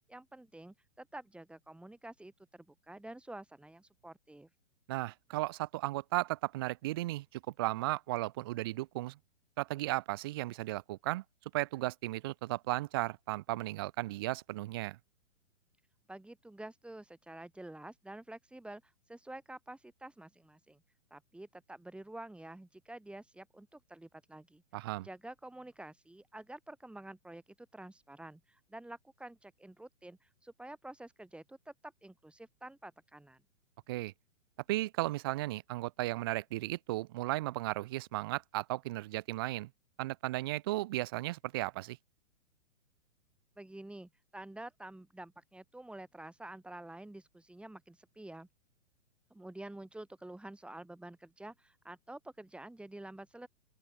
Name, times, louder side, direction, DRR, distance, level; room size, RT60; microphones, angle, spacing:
voice 1, 0.1-4.5 16.1-20.8 21.1-24.6 25.0-33.4 43.6-48.5 49.3-53.5, right 1 dB, 5° right, 6.7 m, -49 dB
voice 2, 4.9-9.2 9.6-11.2 11.5-15.0 24.7-25.1 33.9-34.1 34.7-39.7 40.0-42.0, right 18 dB, 20° right, 0.4 m, -35 dB
open air
figure-of-eight pair, 120°, 38 cm